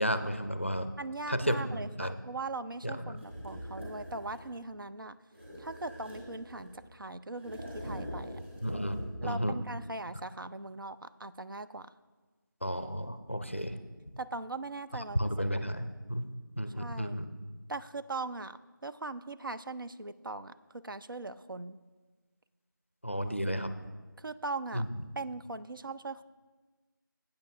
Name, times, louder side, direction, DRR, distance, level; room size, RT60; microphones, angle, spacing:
voice 1, 0.0-0.9 1.3-2.1 2.8-3.2 8.6-9.5 12.6-13.8 15.1-16.3 16.6-17.3 23.0-23.7 24.7-24.9, equal, 35° left, 10 dB, 0.4 m, -32 dB
voice 2, 1.0-5.2 5.6-8.4 9.2-11.9 14.2-15.2 15.5-15.7 16.7-17.2 17.7-21.8 24.2-24.8 25.2-26.2, right 3 dB, 75° right, 12 dB, 0.4 m, -40 dB
sound 1, 3.2-4.5 5.3-6.9 7.4-9.3, equal, 35° right, 2.6 m, -43 dB
13.5 x 8.7 x 2.5 m, 1.3 s
figure-of-eight pair, 180°, 11 cm